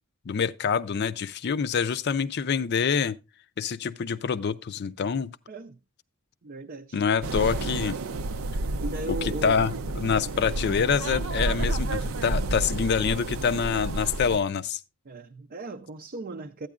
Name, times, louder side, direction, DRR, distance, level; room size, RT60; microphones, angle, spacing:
voice 1, 0.3-3.2 3.6-5.4 6.9-8.0 9.1-14.8, left 6 dB, 55° left, 0.4 m, -26 dB
voice 2, 5.5-5.8 6.4-7.0 8.8-9.6 12.7-12.8 15.1-16.7, right 2 dB, 45° right, 0.5 m, -37 dB
sound 1, 7.2-14.4, right 2 dB, 90° right, 0.6 m, -30 dB
12.0 x 9.2 x 2.4 m
head